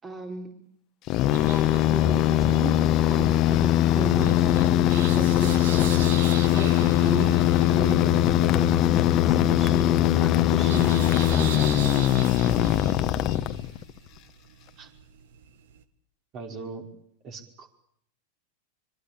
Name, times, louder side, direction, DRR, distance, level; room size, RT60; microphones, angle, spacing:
voice 1, 0.0-0.5 1.4-5.9 6.4-7.3 7.7-12.0, right 4 dB, 25° right, 3 dB, 4.2 m, -36 dB
sound 1, 1.1-13.9, left 13 dB, 40° left, 1.4 m, -21 dB
sound 2, 1.3-15.8, right 9 dB, 65° right, 1.8 m, -41 dB
voice 2, 7.0-7.4 14.8-14.9 16.3-16.9 17.2-17.7, right 4 dB, 40° right, 4 dB, 5.4 m, -39 dB
25.5 x 23.5 x 8.7 m, 0.70 s
figure-of-eight pair, 95°, 0 cm